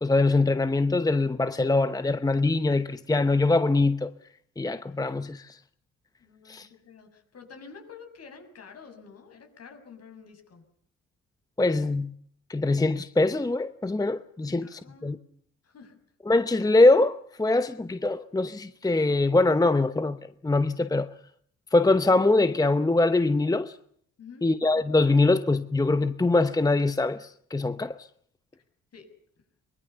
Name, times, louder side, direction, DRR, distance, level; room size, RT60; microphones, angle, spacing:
voice 1, 0.0-4.1 4.6-5.6 6.5-6.7 11.6-12.1 12.5-15.2 16.3-21.1 21.7-23.8 24.4-28.1, left 2 dB, 10° left, 0.9 m, -23 dB
voice 2, 6.2-10.6 14.5-15.2 15.6-16.0 24.2-24.5 28.9-29.1, left 5 dB, 55° left, 6.8 m, -49 dB
23.0 x 22.5 x 7.0 m
cardioid pair, 90°, 30 cm